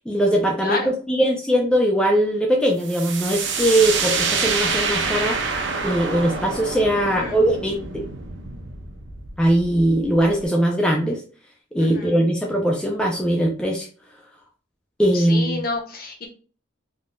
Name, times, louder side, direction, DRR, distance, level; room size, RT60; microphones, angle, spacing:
voice 1, 0.1-5.4 5.8-8.0 9.4-11.2 11.7-13.9 15.0-15.6, right 1 dB, 5° left, -1 dB, 0.4 m, -20 dB
voice 2, 0.6-0.9 7.0-7.4 11.8-12.1 15.1-16.3, left 3 dB, 45° left, 1 dB, 0.8 m, -29 dB
sound 1, 2.8-10.4, right 5 dB, 65° right, 0.5 m, -27 dB
3.5 x 2.5 x 2.2 m, 0.39 s
head